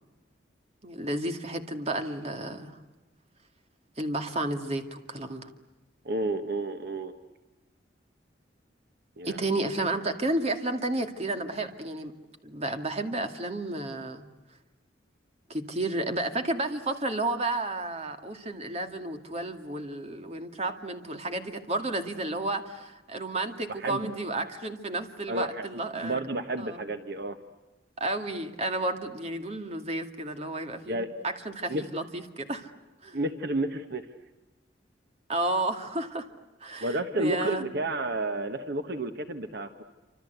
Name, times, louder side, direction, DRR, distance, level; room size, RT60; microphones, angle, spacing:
voice 1, 0.8-2.8 4.0-5.5 9.2-12.1 12.4-14.3 15.5-26.2 26.6-26.8 28.0-32.7 33.0-33.2 35.3-36.3 36.6-37.7, right 2 dB, 35° right, 6 dB, 2.3 m, -32 dB
voice 2, 6.0-7.1 9.2-9.5 23.8-24.1 25.3-25.6 26.0-27.4 30.9-31.1 31.7-31.8 33.1-34.1 36.8-39.8, right 2 dB, 60° right, 8 dB, 1.4 m, -31 dB
28.0 x 26.0 x 8.2 m, 1.2 s
head